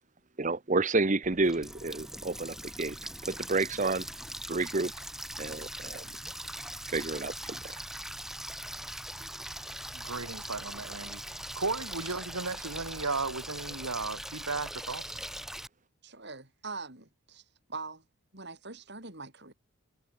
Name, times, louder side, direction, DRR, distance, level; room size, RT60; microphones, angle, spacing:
voice 1, 0.4-3.0 3.2-4.1 4.5-4.9 5.4-6.1 6.9-7.7, right 3 dB, 35° right, 1.0 m, -30 dB
Water tap faucet, 1.2-15.7, right 1 dB, ahead, 7.0 m, -41 dB
voice 2, 9.9-11.2 11.5-15.2, right 3 dB, 90° right, 4.7 m, -35 dB
voice 3, 16.0-17.4 17.7-18.0 18.3-19.5, right 4 dB, 50° right, 4.6 m, -42 dB
head